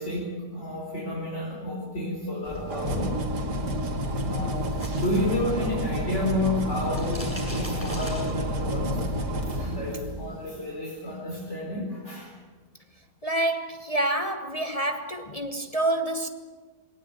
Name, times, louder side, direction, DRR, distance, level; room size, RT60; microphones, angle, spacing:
voice 1, 0.0-3.1 4.2-9.0 9.5-12.3, left 1 dB, 40° left, 4.9 m, -31 dB
sound 1, 2.4-10.4, equal, 75° right, 2.7 m, -30 dB
sound 2, 4.3-6.0 6.3-8.8, equal, 5° left, 8.0 m, -40 dB
voice 2, 13.2-16.3, right 1 dB, 25° left, 1.0 m, -27 dB
21.0 x 18.0 x 9.3 m
omnidirectional pair, 1.8 m